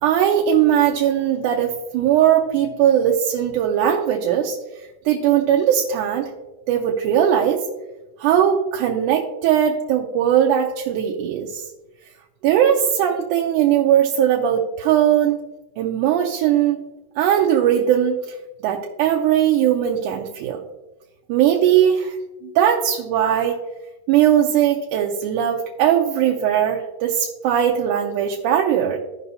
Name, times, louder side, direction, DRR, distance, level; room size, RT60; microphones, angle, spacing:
voice 1, 0.0-4.6 5.1-6.3 6.7-7.6 8.2-11.6 12.4-15.4 15.8-16.8 17.2-18.2 18.6-20.6 21.3-22.2 22.6-23.6 24.1-29.0, right 10 dB, 80° right, 0 dB, 2.0 m, -19 dB
15.5 x 5.4 x 2.7 m, 1.1 s
omnidirectional pair, 3.8 m